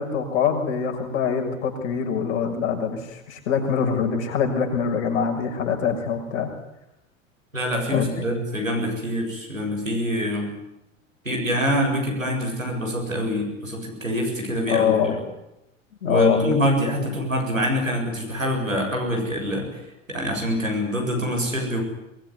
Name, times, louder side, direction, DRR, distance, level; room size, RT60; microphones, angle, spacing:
voice 1, 0.0-6.5 7.9-8.1 14.7-15.2 16.0-16.5, left 7 dB, 60° left, 4 dB, 6.8 m, -24 dB
voice 2, 7.5-10.5 11.2-15.0 16.0-19.8 20.1-21.8, equal, 85° right, 2 dB, 7.7 m, -25 dB
23.0 x 21.5 x 9.7 m, 0.85 s
figure-of-eight pair, 80°, 38 cm